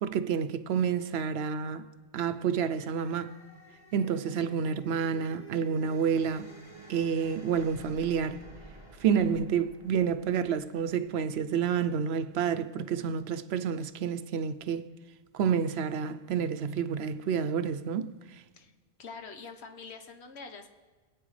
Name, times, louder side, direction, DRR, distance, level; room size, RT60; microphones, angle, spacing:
voice 1, 0.0-1.9 2.1-3.3 3.9-6.5 6.9-8.4 9.0-14.9 15.3-18.1, right 7 dB, 75° right, 0.8 m, -29 dB
sound 1, 2.5-11.6, right 2 dB, 35° right, 3.3 m, -52 dB
voice 2, 19.0-20.7, left 4 dB, 75° left, 1.3 m, -45 dB
22.5 x 8.5 x 3.2 m
omnidirectional pair, 1.1 m